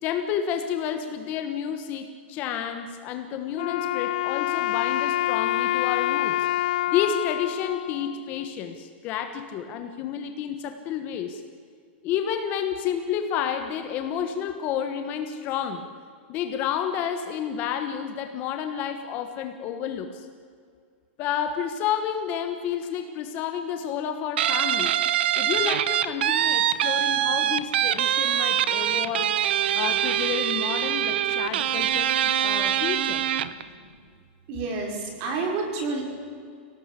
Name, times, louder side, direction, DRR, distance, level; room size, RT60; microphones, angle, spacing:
voice 1, 0.0-6.5 6.9-11.4 12.0-15.8 16.3-20.3 21.2-24.9 25.3-29.4 29.7-32.1 32.4-33.3, left 8 dB, 25° left, 7 dB, 1.3 m, -30 dB
Wind instrument woodwind instrument, 3.5-8.7, left 14 dB, 50° left, 0.6 m, -27 dB
Guitar, 24.4-33.6, right 11 dB, 60° right, 1.1 m, -24 dB
voice 2, 33.4-33.9 34.5-36.0, right 3 dB, 35° right, 3 dB, 4.6 m, -31 dB
25.0 x 18.0 x 8.3 m, 2.2 s
supercardioid pair, 175°, 6 cm